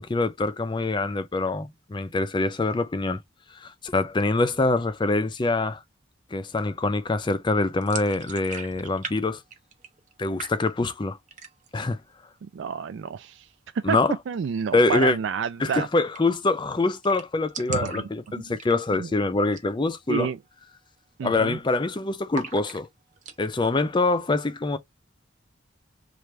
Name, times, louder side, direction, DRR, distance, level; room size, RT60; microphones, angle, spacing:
voice 1, 0.0-3.2 3.6-5.8 6.3-9.4 10.2-11.2 11.7-12.0 13.8-14.1 14.7-15.2 15.6-20.3 21.2-22.9 23.4-24.8, left 3 dB, 25° left, 0.5 m, -24 dB
sound 1, 7.8-9.2 9.4-10.1 10.4-11.0 11.3-11.8 12.2-12.3 12.6-13.2 14.9-15.1 15.4-15.5 15.7-15.8 16.1-16.5 16.8-16.9 17.0-19.1 19.4-19.7 20.1-20.2 20.7-21.0 21.2-21.8 22.3-23.4, right 6 dB, 40° right, 0.8 m, -39 dB
voice 2, 12.4-13.5 13.9-14.0 14.3-15.9 17.7-18.4 19.0-19.1 20.1-20.4 21.2-21.6, right 7 dB, 65° right, 0.3 m, -30 dB
3.3 x 2.4 x 4.4 m
head